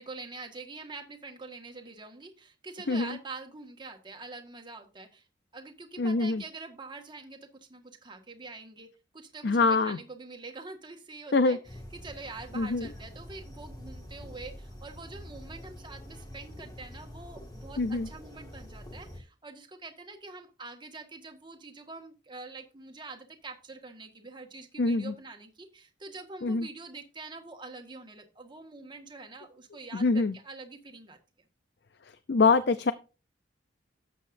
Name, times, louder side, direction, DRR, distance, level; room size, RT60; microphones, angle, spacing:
voice 1, 0.0-5.3 5.5-8.9 9.1-31.5, right 3 dB, 25° right, 4 dB, 1.6 m, -45 dB
voice 2, 6.0-6.4 9.4-10.0 11.3-11.6 12.6-12.9 17.8-18.1 24.8-25.1 26.4-26.7 29.9-30.3 32.3-32.9, left 3 dB, 60° left, 13 dB, 0.5 m, -24 dB
sound 1, 11.6-19.2, equal, 20° left, 1.9 m, -46 dB
13.0 x 8.4 x 2.6 m, 0.32 s
head